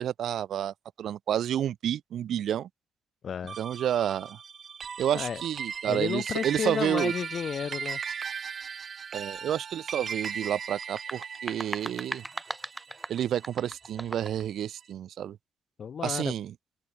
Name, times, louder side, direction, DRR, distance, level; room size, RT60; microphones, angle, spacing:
voice 1, 0.0-2.7 3.6-4.4 5.0-7.1 9.1-12.2 13.1-15.4 16.0-16.5, right 10 dB, 70° right, 1.0 m, -30 dB
voice 2, 3.2-3.6 5.1-5.4 5.9-8.0 15.8-16.3, left 7 dB, 50° left, 3.0 m, -32 dB
sound 1, 3.5-14.1, right 6 dB, 50° right, 0.5 m, -38 dB
sound 2, 10.8-14.5, right 2 dB, 10° right, 3.0 m, -39 dB
open air
cardioid pair, 90°, 0 cm